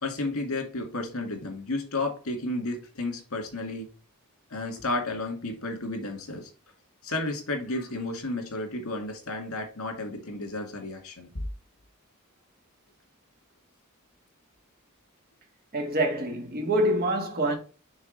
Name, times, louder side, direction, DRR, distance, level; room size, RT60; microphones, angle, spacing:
voice 1, 0.0-3.9 4.5-6.5 7.0-11.5, left 2 dB, 75° left, 2.1 m, -32 dB
voice 2, 15.7-17.6, right 1 dB, 45° right, 1.5 m, -26 dB
6.3 x 3.6 x 5.2 m
head